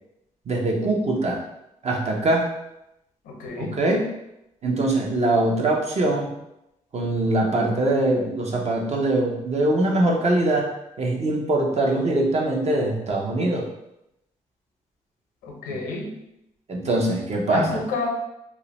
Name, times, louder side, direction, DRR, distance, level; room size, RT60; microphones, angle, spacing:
voice 1, 0.5-1.4 1.8-2.5 3.6-4.1 4.6-6.3 6.9-10.7 11.0-13.7 15.7-15.8 16.7-17.8, right 2 dB, 50° right, -1 dB, 0.7 m, -22 dB
voice 2, 3.2-3.8 15.4-16.1 17.5-18.1, left 3 dB, 90° left, 0 dB, 0.5 m, -29 dB
2.4 x 2.1 x 3.0 m, 0.85 s
supercardioid pair, 50°, 14 cm